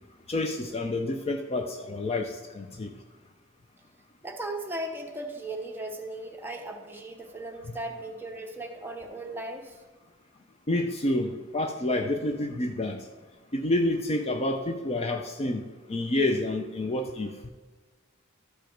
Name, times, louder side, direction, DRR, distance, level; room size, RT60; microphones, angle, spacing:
voice 1, 0.3-2.9 7.7-7.8 10.7-13.0 13.5-15.6 15.9-17.3, left 1 dB, 30° left, 5 dB, 0.5 m, -28 dB
voice 2, 4.2-9.7, right 1 dB, 10° right, 2 dB, 0.9 m, -37 dB
13.0 x 5.0 x 4.5 m, 1.3 s
head